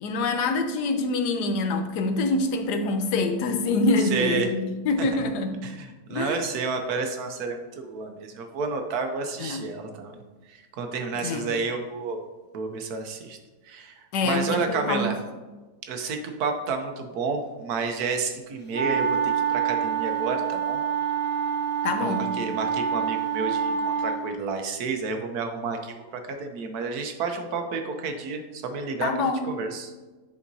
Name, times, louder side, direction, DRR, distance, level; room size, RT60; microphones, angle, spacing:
voice 1, 0.0-5.6 6.1-6.4 9.4-9.6 11.1-11.5 14.1-15.1 21.8-22.3 29.0-29.5, left 3 dB, 85° left, 6 dB, 1.3 m, -25 dB
voice 2, 4.0-4.5 5.0-5.2 5.6-10.2 10.5-12.2 12.5-13.4 13.6-15.2 15.9-20.8 22.0-29.9, right 4 dB, 70° right, 5 dB, 1.3 m, -30 dB
sound 1, 18.7-24.2, right 7 dB, 10° left, 0.8 m, -26 dB
9.9 x 4.9 x 2.7 m, 1.3 s
omnidirectional pair, 1.7 m